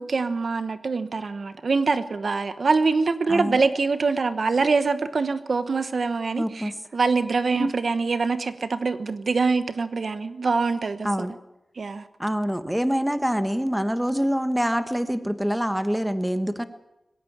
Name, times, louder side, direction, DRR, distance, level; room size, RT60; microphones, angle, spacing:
voice 1, 0.0-11.3 11.8-12.1, right 4 dB, 65° right, 11 dB, 1.1 m, -24 dB
voice 2, 3.3-3.6 6.4-6.7 7.5-7.7 11.0-11.3 12.2-16.6, equal, 5° right, 9 dB, 1.3 m, -25 dB
20.5 x 16.5 x 8.8 m, 0.94 s
wide cardioid pair, 110°, 0 cm